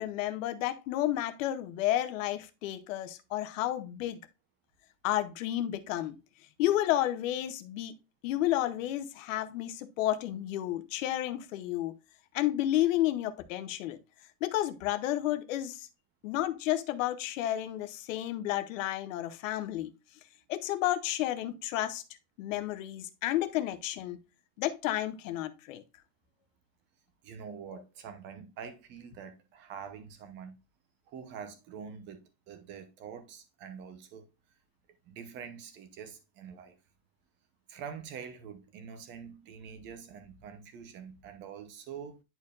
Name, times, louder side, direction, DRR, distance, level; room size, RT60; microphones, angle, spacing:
voice 1, 0.0-4.2 5.0-6.2 6.6-7.9 8.2-12.0 12.3-14.0 14.4-15.9 16.2-19.9 20.5-22.0 22.4-24.2 24.6-25.8, left 13 dB, 50° left, 0.8 m, -31 dB
voice 2, 27.2-30.6 31.1-34.3 35.0-36.8 37.7-42.2, right 7 dB, 25° right, 0.7 m, -45 dB
10.0 x 4.5 x 2.4 m
supercardioid pair, 170°, 49 cm